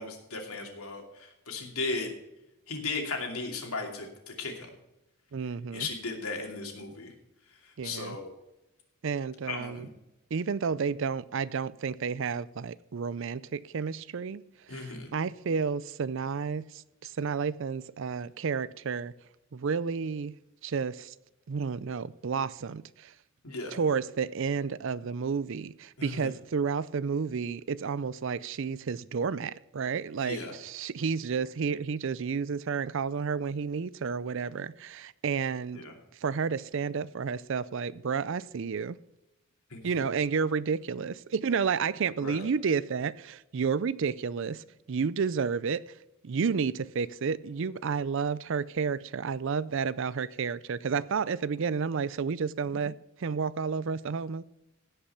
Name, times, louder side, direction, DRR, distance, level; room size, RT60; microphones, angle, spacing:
voice 1, 0.0-2.1 2.7-4.7 5.7-7.1 7.6-8.3 9.5-9.9 14.7-15.1 23.4-23.8 26.0-26.3 30.2-30.6 35.7-36.0 39.7-39.8 42.2-42.4, left 3 dB, 85° left, 2.7 m, -36 dB
voice 2, 5.3-5.9 7.8-8.2 9.0-9.9 10.3-14.4 14.7-19.1 19.5-20.3 20.6-21.1 21.5-23.1 23.7-35.8 36.2-39.0 39.8-45.8 46.2-54.4, right 5 dB, 60° right, 0.4 m, -31 dB
16.5 x 5.7 x 5.7 m
head